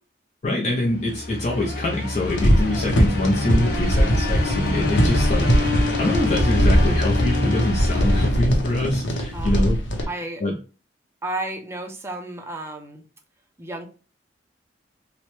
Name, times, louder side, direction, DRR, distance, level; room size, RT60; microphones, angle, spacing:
voice 1, 0.4-10.1 10.4-10.5, left 1 dB, 40° left, -2 dB, 0.5 m, -25 dB
sound 1, 0.9-9.2, left 2 dB, 55° left, 0.9 m, -27 dB
sound 2, 2.3-10.1, equal, 85° left, 0.7 m, -21 dB
voice 2, 10.1-10.4 11.2-13.0 13.6-13.9, right 2 dB, 15° right, 4 dB, 0.4 m, -32 dB
2.9 x 2.1 x 3.0 m, 0.35 s
head